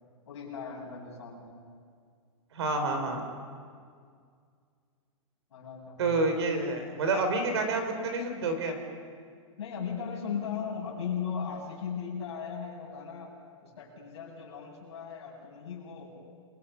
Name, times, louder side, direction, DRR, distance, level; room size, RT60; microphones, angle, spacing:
voice 1, 0.2-1.6 5.5-6.4 9.6-13.3 13.6-16.1, left 6 dB, 55° left, -2 dB, 7.8 m, -37 dB
voice 2, 2.5-3.2 6.0-8.8, right 3 dB, 50° right, 6 dB, 4.1 m, -28 dB
29.0 x 23.5 x 5.8 m, 2.1 s
hypercardioid pair, 180°, 18 cm